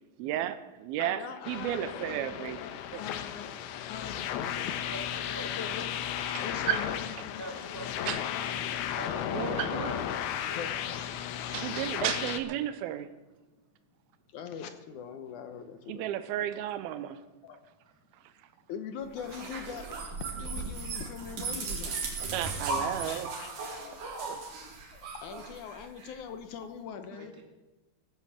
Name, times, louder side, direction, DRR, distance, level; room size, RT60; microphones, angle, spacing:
voice 1, 0.2-2.6 2.9-3.0 6.3-6.8 8.1-8.2 9.3-9.9 11.5-13.1 15.9-17.2 22.3-23.3 24.2-24.4, right 12 dB, 90° right, 12 dB, 2.6 m, -33 dB
voice 2, 1.0-3.5 3.9-4.7 5.4-7.4 7.7-8.8 10.6-10.8 14.3-16.1 17.4-17.6 18.7-22.5 23.1-24.1 24.9-27.3, left 7 dB, 70° left, 8 dB, 2.0 m, -42 dB
sound 1, 1.4-12.4, left 10 dB, 90° left, 2.9 m, -34 dB
voice 3, 4.9-5.8 6.6-6.9 7.4-8.1 8.9-10.0 10.4-10.6 27.1-27.4, right 1 dB, 15° left, 0 dB, 0.6 m, -43 dB
sound 2, 19.2-26.1, right 3 dB, 60° right, 3.8 m, -37 dB
19.0 x 8.3 x 7.3 m, 1.1 s
omnidirectional pair, 4.3 m